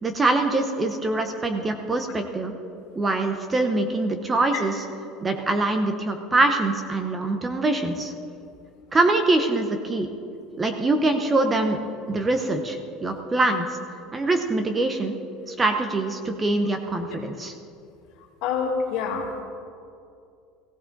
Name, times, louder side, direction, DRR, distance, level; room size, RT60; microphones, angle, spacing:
voice 1, 0.0-2.6 3.0-4.8 5.2-8.1 8.9-10.1 10.6-11.8 12.1-13.7 14.1-15.2 15.5-17.5, right 2 dB, 15° right, 6 dB, 0.7 m, -24 dB
voice 2, 18.4-19.4, left 5 dB, 65° left, 1 dB, 2.1 m, -26 dB
18.0 x 15.5 x 3.9 m, 2.5 s
cardioid pair, 170°, 0 cm